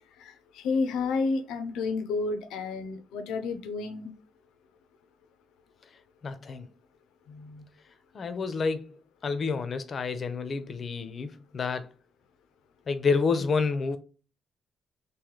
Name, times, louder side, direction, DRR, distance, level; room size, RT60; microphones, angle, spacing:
voice 1, 0.2-4.1 7.3-7.6, left 4 dB, 90° left, 0.6 m, -31 dB
voice 2, 6.2-6.7 8.1-9.0 9.2-11.9 12.9-14.0, left 4 dB, 45° left, 0.6 m, -29 dB
3.1 x 2.7 x 3.9 m
cardioid pair, 90°, 0 cm